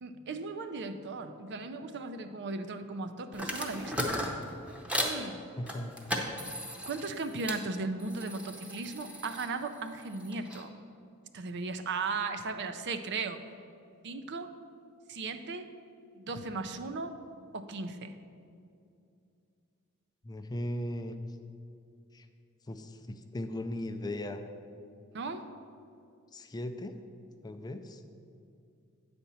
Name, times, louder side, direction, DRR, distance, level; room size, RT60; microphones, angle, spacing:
voice 1, 0.0-4.1 5.0-5.4 6.8-10.7 11.3-13.4 14.0-14.5 15.1-15.7 16.2-17.2 17.5-18.1 25.1-25.5, right 3 dB, 55° right, 9 dB, 0.5 m, -36 dB
sound 1, 3.3-5.2 5.7-7.6 8.0-10.6, equal, 5° right, 0.8 m, -37 dB
voice 2, 5.6-5.9 20.2-21.2 22.1-22.3 22.7-24.4 26.3-27.0 27.4-28.0, left 1 dB, 20° left, 7 dB, 0.4 m, -37 dB
9.1 x 4.3 x 6.9 m, 2.5 s
head